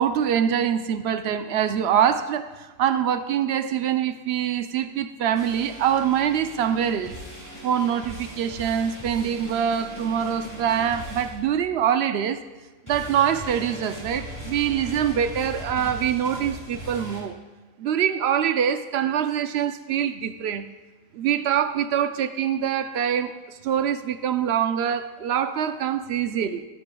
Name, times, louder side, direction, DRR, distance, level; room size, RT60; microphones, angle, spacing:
voice 1, 0.0-7.1 7.6-12.4 12.9-17.4 17.8-20.7 21.1-26.6, right 9 dB, 65° right, 10 dB, 0.7 m, -24 dB
sound 1, 5.3-12.0 12.9-17.2, equal, 15° left, 3.9 m, -39 dB
12.5 x 11.5 x 2.3 m, 1.2 s
omnidirectional pair, 1.4 m